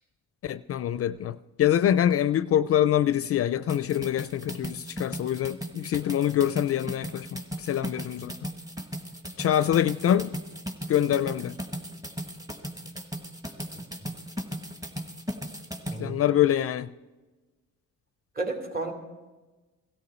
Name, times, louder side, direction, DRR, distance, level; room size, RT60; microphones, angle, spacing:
voice 1, 0.4-8.3 9.4-10.3 10.9-11.6 16.0-16.9, left 11 dB, 50° left, 0.4 m, -25 dB
sound 1, 3.7-16.0, equal, 10° right, 1.6 m, -37 dB
voice 2, 15.9-16.2 18.4-18.9, right 2 dB, 30° right, 2.7 m, -32 dB
17.5 x 13.0 x 4.3 m
cardioid pair, 90°, 30 cm